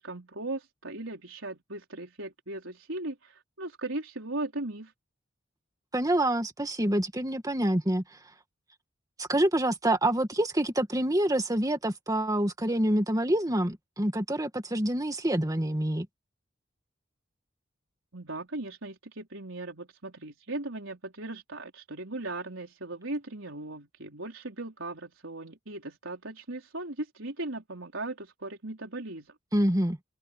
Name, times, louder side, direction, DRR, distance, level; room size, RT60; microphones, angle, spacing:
voice 1, 0.0-4.9 18.1-29.3, right 2 dB, 85° right, 4.3 m, -38 dB
voice 2, 5.9-8.0 9.2-16.1 29.5-30.0, right 1 dB, 20° right, 2.0 m, -26 dB
open air
head